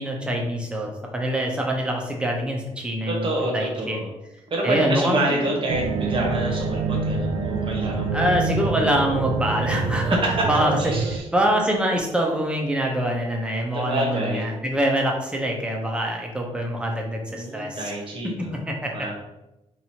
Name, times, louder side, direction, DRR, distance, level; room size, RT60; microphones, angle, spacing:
voice 1, 0.0-4.0 4.6-5.5 8.1-10.2 10.5-17.9 18.4-19.1, equal, 10° right, 0 dB, 0.7 m, -25 dB
voice 2, 3.1-4.1 4.5-8.3 10.0-10.3 10.8-11.2 13.7-14.6 17.3-18.6 18.9-19.1, right 1 dB, 50° right, -1 dB, 1.2 m, -27 dB
sound 1, 5.7-11.2, right 4 dB, 70° right, 0.4 m, -26 dB
2.9 x 2.6 x 4.3 m, 0.94 s
cardioid pair, 115°, 12 cm